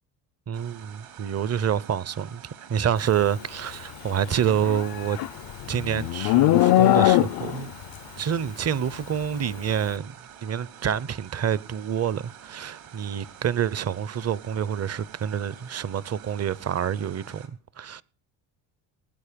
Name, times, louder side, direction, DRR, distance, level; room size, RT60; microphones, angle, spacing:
voice 1, 0.5-5.2 5.7-7.7 8.2-10.1 10.4-18.0, right 8 dB, 30° right, 0.7 m, -27 dB
sound 1, 0.5-17.5, right 9 dB, 70° right, 2.8 m, -48 dB
Livestock farm animals working animals, 4.4-7.7, left 15 dB, 50° left, 0.5 m, -21 dB
19.0 x 8.2 x 5.1 m
supercardioid pair, 70°, 48 cm